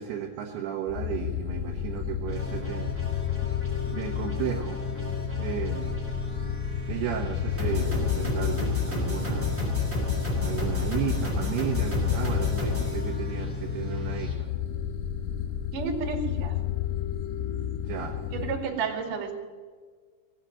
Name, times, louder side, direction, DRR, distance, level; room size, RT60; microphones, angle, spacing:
voice 1, 0.0-2.9 3.9-4.8 5.4-6.1 6.8-9.6 10.4-14.5 17.8-18.2, right 9 dB, 70° right, 1 dB, 2.7 m, -34 dB
sound 1, 0.9-18.6, left 10 dB, 80° left, 3.4 m, -32 dB
sound 2, 2.3-14.3, left 1 dB, 5° right, 2.9 m, -32 dB
voice 2, 15.7-16.5 18.3-19.3, right 5 dB, 50° right, 2 dB, 3.1 m, -31 dB
19.0 x 8.3 x 9.1 m, 1.6 s
omnidirectional pair, 5.9 m